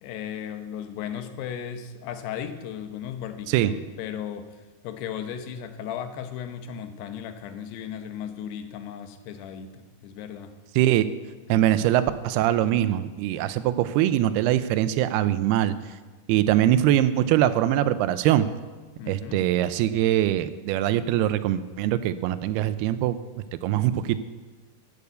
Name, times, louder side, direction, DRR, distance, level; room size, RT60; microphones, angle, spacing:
voice 1, 0.0-4.6 4.8-10.6 11.5-11.7 19.0-19.5, left 8 dB, 85° left, 8 dB, 3.0 m, -36 dB
voice 2, 10.8-11.1 11.5-15.8 16.3-18.5 19.1-23.2 23.5-24.2, right 12 dB, 85° right, 13 dB, 2.5 m, -22 dB
13.5 x 6.9 x 8.1 m, 1.3 s
omnidirectional pair, 4.6 m